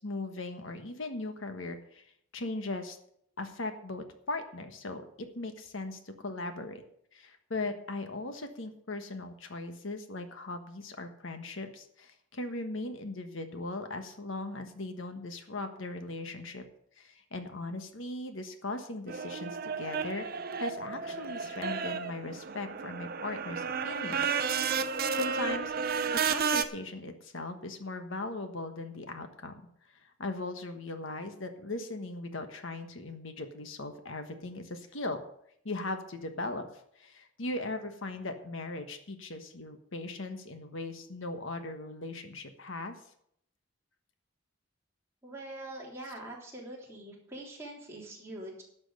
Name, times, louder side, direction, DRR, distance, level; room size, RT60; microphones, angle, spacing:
voice 1, 0.0-3.0 3.4-6.8 7.1-16.6 17.0-20.3 20.6-24.4 25.1-29.6 29.9-35.2 35.6-43.0, left 2 dB, 65° left, 7 dB, 1.3 m, -39 dB
sound 1, 19.1-26.6, right 6 dB, 45° right, 0.7 m, -32 dB
voice 2, 45.2-48.6, right 1 dB, 10° right, -4 dB, 3.3 m, -43 dB
11.5 x 6.2 x 8.0 m, 0.69 s
head